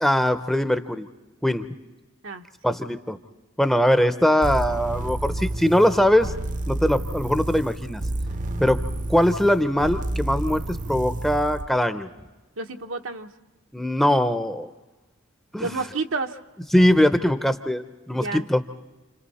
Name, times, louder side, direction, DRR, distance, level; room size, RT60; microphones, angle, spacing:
voice 1, 0.0-1.1 1.4-1.7 2.6-3.2 3.6-6.3 6.7-8.0 8.6-8.8 9.1-12.1 13.7-14.7 15.5-15.7 16.7-18.6, equal, ahead, 9 dB, 0.7 m, -21 dB
voice 2, 2.2-2.8 12.6-13.3 15.6-16.4 18.1-18.5, right 3 dB, 80° right, 5 dB, 1.1 m, -30 dB
sound 1, 4.4-11.7, right 1 dB, 40° right, 0.7 m, -30 dB
29.5 x 27.0 x 4.2 m, 1.2 s
head